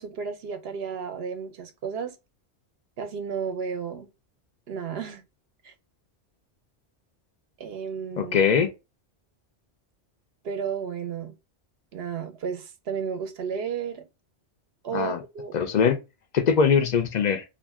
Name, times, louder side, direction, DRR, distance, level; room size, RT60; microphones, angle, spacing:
voice 1, 0.0-2.1 3.0-4.1 4.7-5.2 5.6-5.7 7.6-8.4 10.4-11.3 11.9-14.1 14.8-15.6, right 6 dB, 65° right, 0.8 m, -33 dB
voice 2, 8.2-8.7 14.9-15.2 15.5-16.0 16.3-17.4, left 6 dB, 55° left, 0.5 m, -21 dB
2.5 x 2.1 x 3.3 m
omnidirectional pair, 1.2 m